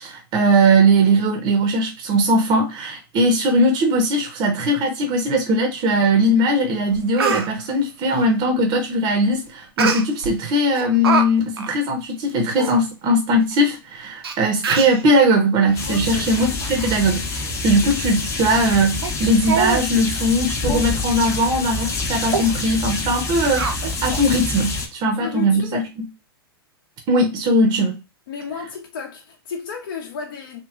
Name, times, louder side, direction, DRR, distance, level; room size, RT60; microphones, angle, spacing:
voice 1, 0.0-17.2 17.6-26.1 27.1-28.0, right 1 dB, 35° right, 0.6 m, -19 dB
Speech, 6.5-6.6 6.9-7.5 9.8-10.3 10.7-11.3 11.6-11.7 12.3-12.4 12.6-12.7 13.5-13.6 14.2-14.3 14.6-15.0 15.7-15.9 16.3-17.0 17.3-17.5 17.9-18.0 18.5-18.7 19.0-19.1 19.4-19.8 20.2-20.3 20.7-20.9 21.2-21.4 21.8-21.9 22.3-22.5 23.6-24.2 24.6-24.7, right 5 dB, 75° right, 0.6 m, -25 dB
sound 1, 15.8-24.9, left 3 dB, 25° left, 0.7 m, -27 dB
voice 2, 15.9-16.3 25.2-25.9 28.3-30.6, left 6 dB, 65° left, 0.7 m, -32 dB
2.9 x 2.8 x 2.3 m
hypercardioid pair, 105°, 13 cm